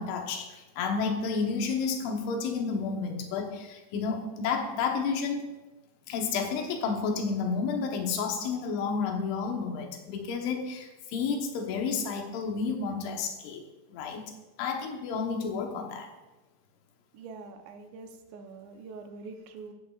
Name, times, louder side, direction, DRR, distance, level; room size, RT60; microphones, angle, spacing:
voice 1, 0.0-5.4 6.1-13.6 13.9-14.3 14.6-16.1, left 5 dB, 85° left, 3 dB, 3.5 m, -31 dB
voice 2, 17.1-19.7, right 4 dB, 80° right, 6 dB, 2.9 m, -45 dB
15.5 x 8.4 x 2.4 m, 1.1 s
omnidirectional pair, 5.2 m